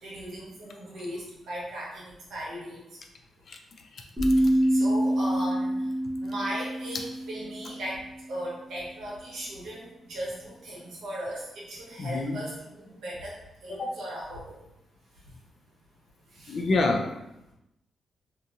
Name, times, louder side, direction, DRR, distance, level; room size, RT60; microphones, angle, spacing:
voice 1, 0.0-2.8 4.4-5.7 6.2-8.0 8.3-13.3 13.6-14.6 16.3-16.6, equal, 80° right, -5 dB, 1.1 m, -37 dB
sound 1, 4.2-8.0, right 1 dB, 10° right, 0.9 m, -26 dB
voice 2, 4.3-4.7 12.0-12.4 13.7-13.9 16.5-17.1, left 2 dB, 45° left, 2 dB, 0.4 m, -28 dB
2.8 x 2.6 x 2.4 m, 0.88 s
wide cardioid pair, 145°, 0 cm